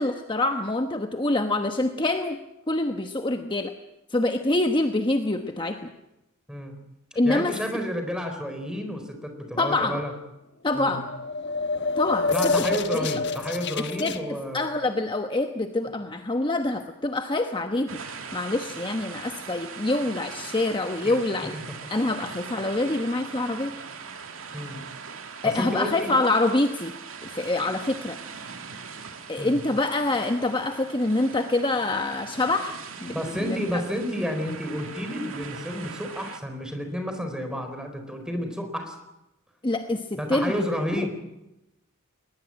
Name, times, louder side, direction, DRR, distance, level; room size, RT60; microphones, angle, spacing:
voice 1, 0.0-2.4 2.7-3.7 4.1-5.9 7.1-7.6 9.6-10.0 10.6-11.1 12.0-12.7 12.9-13.2 14.0-18.0 18.3-21.6 21.9-23.8 25.4-26.9 27.2-28.2 29.3-32.8 33.0-33.8 39.6-40.6 40.9-41.1, left 2 dB, 25° left, 6 dB, 1.1 m, -26 dB
voice 2, 7.2-10.1 10.7-11.0 12.3-14.7 21.0-21.2 21.7-21.8 24.5-24.8 25.4-26.2 29.4-29.6 33.1-38.9 40.2-41.1, equal, 5° right, 5 dB, 4.3 m, -31 dB
sound 1, 11.0-14.2, left 4 dB, 55° left, 1.3 m, -27 dB
sound 2, 17.9-36.4, right 5 dB, 75° right, 2.4 m, -41 dB
21.0 x 20.5 x 8.9 m, 0.94 s
head